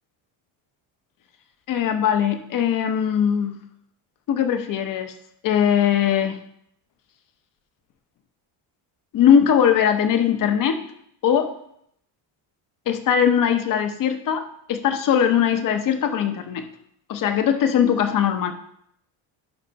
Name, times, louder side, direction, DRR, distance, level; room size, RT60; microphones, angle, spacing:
voice 1, 1.7-3.6 4.3-5.1 5.4-6.4 9.1-10.8 11.2-11.5 12.9-14.4 14.7-16.6 17.1-18.5, left 8 dB, 40° left, 8 dB, 0.8 m, -20 dB
10.5 x 3.8 x 5.6 m, 0.70 s
cardioid pair, 165°, 50 cm